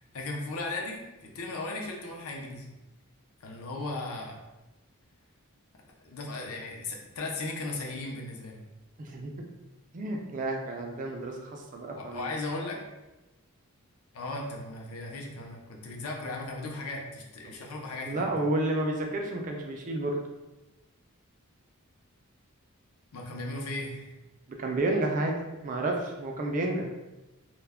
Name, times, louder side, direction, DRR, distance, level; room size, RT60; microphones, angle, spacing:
voice 1, 0.0-2.7 3.4-4.4 6.0-8.6 12.0-12.8 14.1-18.3 23.1-24.1, left 2 dB, 70° left, 0 dB, 0.5 m, -37 dB
voice 2, 9.0-9.5 9.9-12.3 18.0-20.2 24.6-25.4 25.6-26.9, right 2 dB, 35° right, 1 dB, 0.3 m, -30 dB
2.2 x 2.1 x 3.4 m, 1.0 s
head